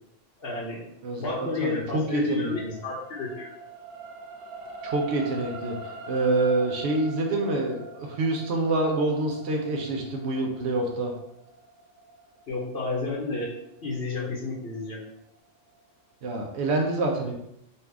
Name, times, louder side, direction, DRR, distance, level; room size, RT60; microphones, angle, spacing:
voice 1, 0.4-0.8 1.2-3.5 12.5-13.5 13.8-15.0, left 3 dB, 55° left, -3 dB, 1.1 m, -31 dB
voice 2, 1.0-2.7 4.8-5.8 6.1-11.1 16.2-17.3, right 2 dB, 65° right, 1 dB, 0.9 m, -27 dB
sound 1, 1.9-14.2 14.8-14.9, right 1 dB, 90° right, 1.1 m, -43 dB
4.1 x 2.4 x 3.3 m, 0.79 s
omnidirectional pair, 1.3 m